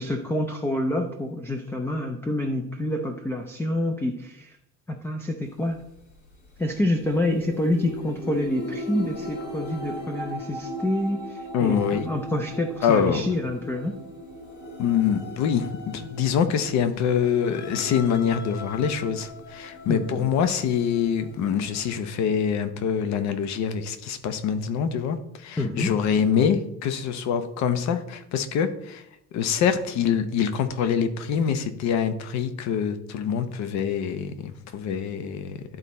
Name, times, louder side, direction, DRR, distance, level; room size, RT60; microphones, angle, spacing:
voice 1, 0.0-4.6 4.9-5.8 6.6-14.0 19.9-20.3 25.6-26.0, left 1 dB, 10° left, 4 dB, 0.4 m, -27 dB
sound 1, 5.4-22.0, equal, 80° left, 2.6 m, -39 dB
voice 2, 11.5-12.1 12.8-13.2 14.8-29.0 29.3-35.6, left 7 dB, 65° left, 10 dB, 0.9 m, -25 dB
11.5 x 4.0 x 4.3 m, 0.79 s
cardioid pair, 175°, 29 cm